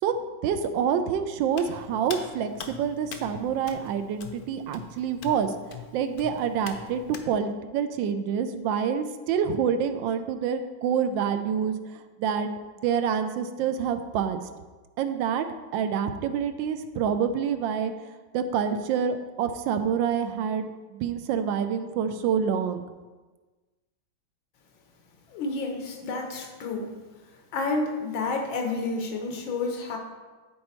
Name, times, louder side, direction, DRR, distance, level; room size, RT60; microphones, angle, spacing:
voice 1, 0.4-5.5 5.9-12.5 12.8-14.4 15.0-15.5 15.7-17.9 18.3-22.8, right 7 dB, 80° right, 9 dB, 1.3 m, -27 dB
Hands, 1.5-7.3, left 5 dB, 65° left, 1.0 m, -43 dB
voice 2, 25.3-26.9 27.5-30.0, left 3 dB, 85° left, 3 dB, 1.8 m, -30 dB
10.0 x 4.3 x 4.4 m, 1.3 s
omnidirectional pair, 2.1 m